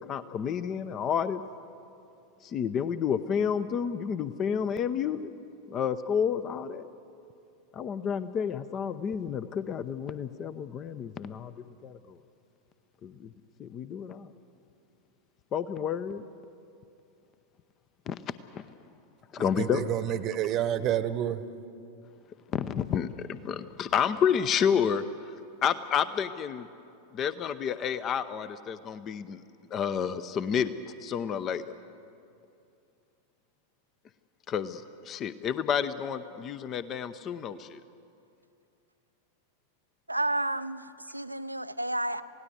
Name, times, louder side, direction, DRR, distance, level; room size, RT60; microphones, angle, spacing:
voice 1, 0.0-1.4 2.4-5.3 5.7-6.9 7.7-11.5 11.8-12.2 13.0-13.3 13.6-14.3 15.5-16.2 18.1-18.6 19.3-19.8 22.5-25.0 25.6-26.7 27.1-29.4 29.7-30.7 31.0-31.6 34.5-37.8, left 7 dB, 30° left, 14 dB, 0.7 m, -30 dB
voice 2, 19.4-21.4, right 11 dB, 35° right, 14 dB, 1.0 m, -29 dB
voice 3, 40.1-42.2, right 1 dB, 85° right, 13 dB, 0.6 m, -31 dB
27.5 x 17.5 x 8.1 m, 2.6 s
figure-of-eight pair, 90°, 0 cm